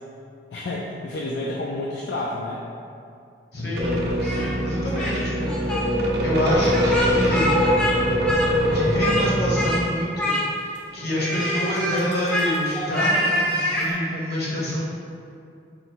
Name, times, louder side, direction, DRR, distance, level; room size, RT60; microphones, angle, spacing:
voice 1, 0.5-2.6, left 2 dB, 80° left, -3 dB, 0.4 m, -29 dB
voice 2, 3.5-7.6 8.7-14.8, equal, 65° left, -7 dB, 1.1 m, -27 dB
sound 1, 3.7-9.8, equal, 60° right, 0.5 m, -23 dB
Speech, 4.2-5.2 5.4-5.8 6.6-8.0 8.2-9.3 9.6-9.8 10.2-10.8 11.2-13.9, left 1 dB, 5° left, 0.5 m, -26 dB
3.9 x 2.1 x 4.4 m, 2.4 s
head